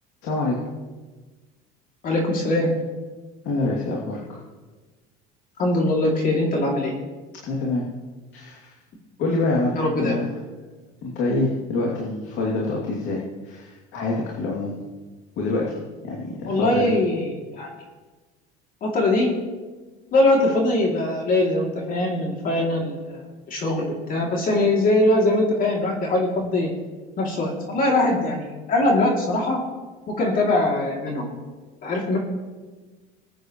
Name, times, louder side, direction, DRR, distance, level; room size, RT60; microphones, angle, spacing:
voice 1, 0.2-0.6 3.4-4.4 7.4-7.9 8.3-8.7 9.2-10.2 11.0-14.7 15.4-15.8 16.0-16.8, left 2 dB, 65° left, -4 dB, 2.8 m, -26 dB
voice 2, 2.0-2.7 5.6-6.9 9.8-10.1 16.5-17.7 18.8-19.3 20.1-23.2 23.5-26.7 27.2-29.6 30.1-31.3 31.8-32.2, left 2 dB, 45° left, -1 dB, 2.8 m, -22 dB
23.0 x 8.9 x 3.2 m, 1.3 s
cardioid pair, 120°, 20 cm